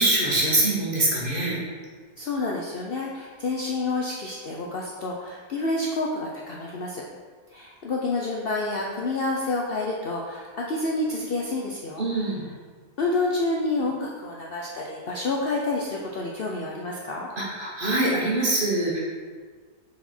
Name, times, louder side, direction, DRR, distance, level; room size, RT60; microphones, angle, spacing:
voice 1, 0.0-1.5 12.0-12.4 17.4-19.0, right 2 dB, 35° right, -5 dB, 1.3 m, -23 dB
voice 2, 2.2-7.0 7.5-12.3 13.0-17.3, left 2 dB, 85° left, -2 dB, 0.5 m, -29 dB
6.2 x 4.1 x 4.3 m, 1.5 s
omnidirectional pair, 1.8 m